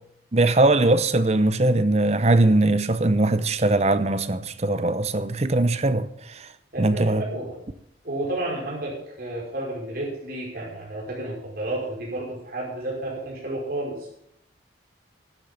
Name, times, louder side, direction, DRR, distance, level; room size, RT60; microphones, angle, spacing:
voice 1, 0.3-6.5 6.8-7.2, right 2 dB, 35° right, 0.7 m, -21 dB
voice 2, 6.7-7.5 8.0-14.0, right 1 dB, 50° right, 5.4 m, -31 dB
12.5 x 8.6 x 7.1 m
head